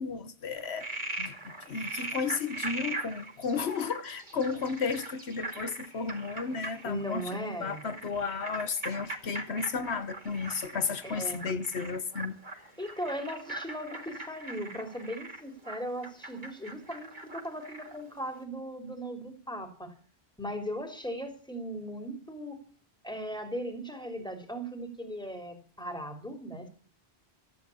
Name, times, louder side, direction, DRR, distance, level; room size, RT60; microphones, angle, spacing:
voice 1, 0.0-12.6, left 5 dB, 85° left, 1.4 m, -33 dB
Frog, 0.6-18.0, right 2 dB, 50° right, 2.5 m, -41 dB
voice 2, 6.8-7.8 11.0-11.4 12.8-19.9 20.4-22.6 23.0-26.7, equal, 5° left, 3.4 m, -38 dB
14.0 x 9.3 x 8.5 m
omnidirectional pair, 1.1 m